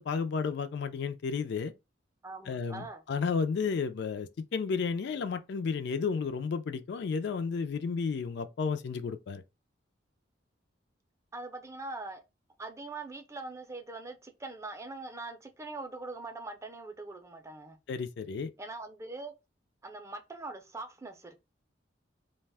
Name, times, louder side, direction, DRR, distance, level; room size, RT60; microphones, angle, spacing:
voice 1, 0.0-1.7 2.5-9.4 17.9-18.5, left 5 dB, 65° left, 0.3 m, -32 dB
voice 2, 2.2-3.0 11.3-12.2 12.6-17.8 18.6-19.3 19.8-21.4, right 3 dB, 15° right, 0.4 m, -42 dB
2.4 x 2.2 x 3.3 m
head